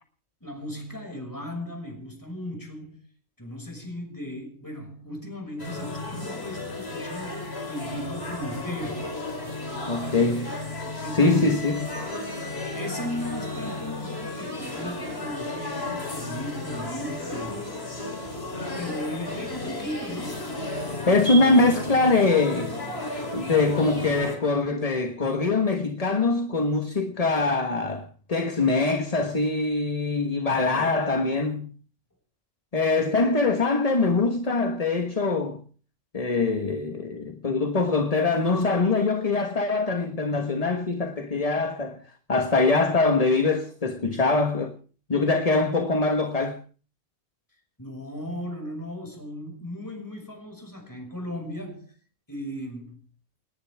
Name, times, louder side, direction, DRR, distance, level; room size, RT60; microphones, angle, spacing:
voice 1, 0.4-3.0 3.4-9.2 11.0-11.6 12.6-17.7 18.8-20.6 47.8-51.9 52.3-53.0, left 1 dB, 15° left, 6.0 m, -36 dB
sound 1, 5.6-24.4, left 2 dB, 50° left, 4.1 m, -33 dB
voice 2, 9.9-10.5 10.9-11.9 21.1-22.7 23.3-31.7 32.7-35.6 36.1-42.0 42.3-44.7 45.1-46.6, left 3 dB, 30° left, 1.4 m, -23 dB
29.0 x 11.0 x 3.5 m
omnidirectional pair, 1.3 m